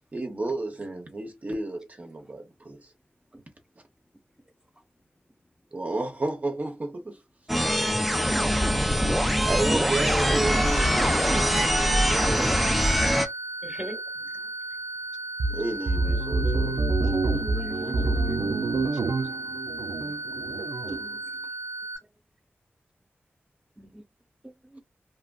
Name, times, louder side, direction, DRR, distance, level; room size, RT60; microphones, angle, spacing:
voice 1, 0.1-2.9 5.7-7.2 9.1-12.8 15.5-16.8, right 2 dB, 35° right, 0.6 m, -32 dB
voice 2, 4.0-4.4 4.9-5.7, left 1 dB, 20° left, 0.7 m, -70 dB
sound 1, 7.5-13.3, equal, ahead, 0.3 m, -23 dB
voice 3, 9.0-9.4 13.2-13.3 13.6-14.3 16.0-16.6 17.0-19.0 20.0-20.2 20.8-21.2 23.8-24.0 24.4-24.8, right 1 dB, 15° right, 1.0 m, -41 dB
sound 2, 10.5-22.0, right 1 dB, 65° left, 1.5 m, -36 dB
sound 3, 15.4-21.0, right 3 dB, 85° right, 0.3 m, -27 dB
2.8 x 2.5 x 2.3 m
wide cardioid pair, 90°, 4 cm